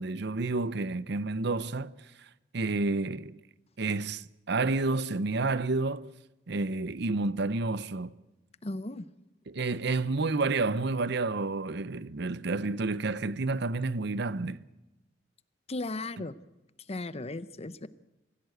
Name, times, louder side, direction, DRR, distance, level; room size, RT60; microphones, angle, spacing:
voice 1, 0.0-1.9 2.5-3.4 3.8-6.1 6.5-8.1 9.5-14.6, right 3 dB, 65° right, 0.7 m, -30 dB
voice 2, 8.6-9.0 15.7-16.3 16.9-17.9, left 2 dB, 35° left, 0.8 m, -36 dB
24.5 x 15.5 x 8.0 m
head